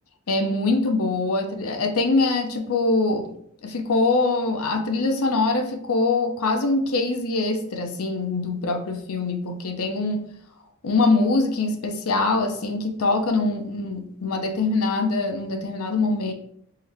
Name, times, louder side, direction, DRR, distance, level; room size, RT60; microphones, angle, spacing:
voice 1, 0.3-3.3 3.6-10.2 10.8-16.3, left 3 dB, 80° left, 5 dB, 0.6 m, -23 dB
3.7 x 2.7 x 3.3 m, 0.68 s
head